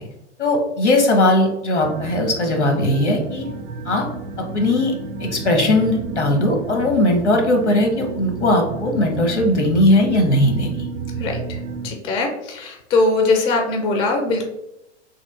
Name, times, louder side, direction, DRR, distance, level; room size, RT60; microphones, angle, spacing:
voice 1, 0.4-3.5 3.9-4.0 4.4-4.9 5.2-10.7, left 1 dB, 75° left, 3 dB, 1.0 m, -18 dB
sound 1, 1.8-11.9, right 4 dB, 50° right, 0.5 m, -31 dB
voice 2, 11.2-11.6 11.8-14.5, left 3 dB, 15° left, 3 dB, 0.4 m, -21 dB
3.4 x 2.4 x 3.5 m, 0.88 s
figure-of-eight pair, 95°, 35 cm